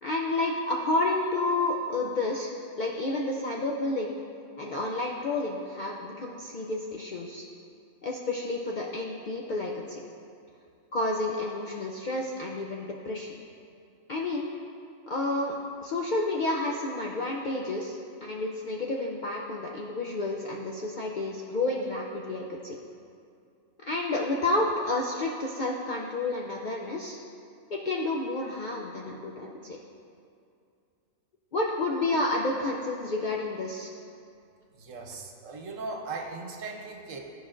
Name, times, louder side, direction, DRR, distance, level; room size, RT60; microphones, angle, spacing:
voice 1, 0.0-2.5 2.8-4.2 4.6-7.5 8.0-10.0 10.9-13.3 14.1-14.5 15.1-15.6 15.8-22.8 23.8-27.2 27.7-29.8 31.5-33.9, left 2 dB, 60° left, -1 dB, 0.5 m, -30 dB
voice 2, 34.8-37.2, right 3 dB, 75° right, 2 dB, 1.2 m, -38 dB
13.5 x 5.0 x 2.5 m, 2.5 s
omnidirectional pair, 1.4 m